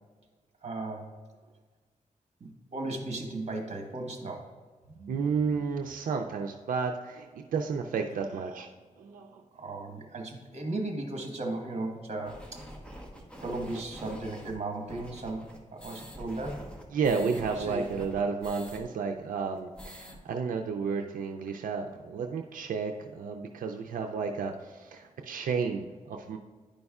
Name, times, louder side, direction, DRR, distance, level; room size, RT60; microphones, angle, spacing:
voice 1, 0.6-1.1 2.4-4.5 5.0-5.1 9.5-12.6 13.4-16.6 17.6-17.8, right 2 dB, 50° right, 3 dB, 1.2 m, -36 dB
voice 2, 5.1-8.7 9.0-9.4 16.9-26.4, right 5 dB, 90° right, 3 dB, 0.4 m, -32 dB
sound 1, 12.2-18.8 19.1-19.2 19.5-20.2, equal, 10° left, 1.0 m, -46 dB
10.0 x 5.2 x 2.4 m, 1.5 s
wide cardioid pair, 100°, 14 cm